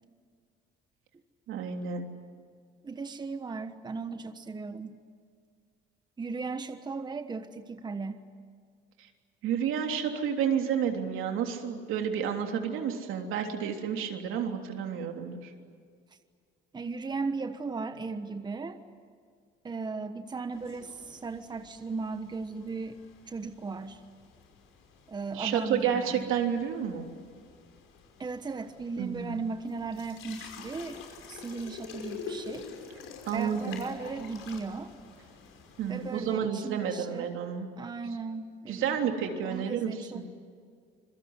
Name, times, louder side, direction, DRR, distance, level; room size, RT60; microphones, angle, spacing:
voice 1, 1.5-2.1 9.4-15.5 25.3-27.1 29.0-29.4 33.3-33.8 35.8-37.7 38.7-40.2, right 8 dB, 75° right, 3 dB, 3.4 m, -30 dB
voice 2, 2.8-5.0 6.2-8.2 16.7-18.8 19.6-23.0 23.3-24.0 25.1-26.3 28.2-31.0 31.3-32.7 33.3-34.9 35.9-37.3 37.8-39.0 39.4-40.4, right 4 dB, 20° right, 8 dB, 1.2 m, -36 dB
sound 1, 20.5-36.3, left 5 dB, 80° left, 5.5 m, -47 dB
26.5 x 22.5 x 9.7 m, 2.1 s
cardioid pair, 125°, 21 cm